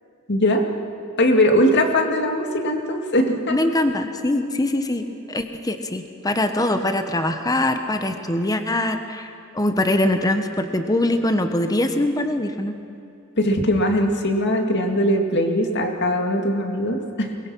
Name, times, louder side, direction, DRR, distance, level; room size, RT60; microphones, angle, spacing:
voice 1, 0.3-0.7 1.2-3.6 13.4-17.3, left 1 dB, 55° left, 4 dB, 2.2 m, -20 dB
voice 2, 3.5-12.7, left 1 dB, 20° left, 7 dB, 1.1 m, -23 dB
23.5 x 21.0 x 6.2 m, 2.8 s
head